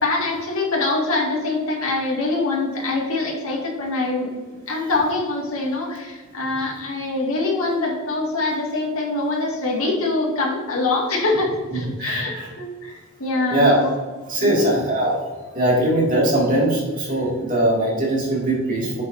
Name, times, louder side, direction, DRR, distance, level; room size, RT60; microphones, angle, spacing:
voice 1, 0.0-4.3 4.7-13.9 14.4-14.7, left 2 dB, 70° left, -3 dB, 2.0 m, -24 dB
voice 2, 12.0-12.5 13.3-13.8 14.3-15.1 15.5-19.0, right 1 dB, 35° right, -4 dB, 2.3 m, -20 dB
8.6 x 7.1 x 2.7 m, 1.4 s
head